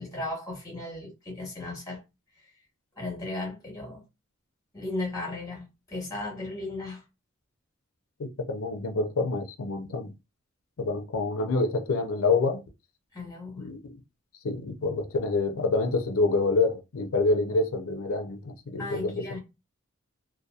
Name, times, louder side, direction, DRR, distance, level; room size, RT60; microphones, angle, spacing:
voice 1, 0.0-2.0 3.0-4.0 4.7-7.0 13.1-13.7 18.8-19.4, left 2 dB, 15° left, 0.9 m, -35 dB
voice 2, 8.2-10.1 10.8-12.6 13.6-13.9 14.4-19.2, left 3 dB, 75° left, 0.5 m, -27 dB
2.7 x 2.2 x 2.3 m
head